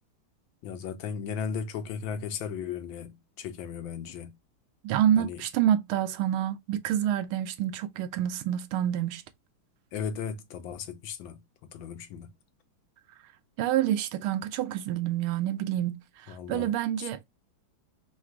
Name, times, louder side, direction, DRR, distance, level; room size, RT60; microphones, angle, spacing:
voice 1, 0.6-4.3 5.2-5.4 9.9-12.3 16.3-16.7 17.0-17.2, left 7 dB, 75° left, 1.4 m, -36 dB
voice 2, 4.8-9.2 13.6-17.2, right 11 dB, 85° right, 1.5 m, -27 dB
3.9 x 2.4 x 4.3 m
omnidirectional pair, 2.3 m